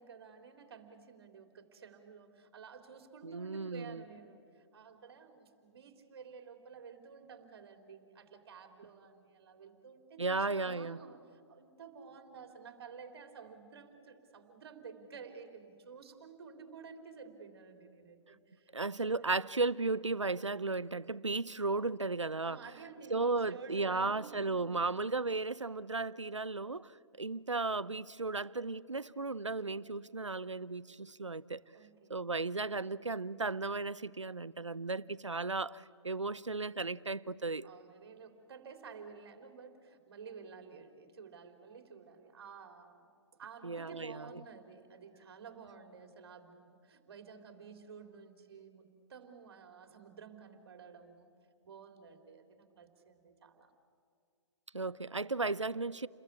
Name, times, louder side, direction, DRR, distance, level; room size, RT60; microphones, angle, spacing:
voice 1, 0.0-18.7 19.2-19.3 22.4-24.9 31.7-32.2 37.6-43.1 43.4-51.3 51.6-53.7, right 6 dB, 55° right, 3.6 m, -52 dB
voice 2, 3.2-4.0 10.2-11.0 18.7-22.6 23.1-31.6 32.1-37.7 43.6-44.3 54.7-56.1, right 3 dB, 90° right, 0.7 m, -35 dB
30.0 x 21.5 x 8.5 m
figure-of-eight pair, 125°, 15 cm